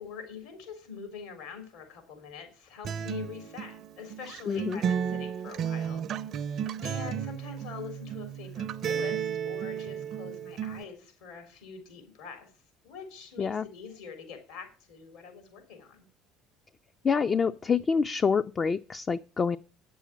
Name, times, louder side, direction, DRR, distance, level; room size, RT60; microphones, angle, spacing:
voice 1, 0.0-6.1 6.4-12.5 12.8-16.0, left 6 dB, 75° left, 5 dB, 3.7 m, -44 dB
Acoustic guitar, 2.8-10.8, right 8 dB, 55° right, 0.6 m, -33 dB
voice 2, 4.5-4.8 13.4-13.7 17.0-19.6, left 5 dB, 35° left, 9 dB, 0.5 m, -27 dB
9.3 x 7.0 x 7.3 m, 0.37 s
hypercardioid pair, 75°, 0 cm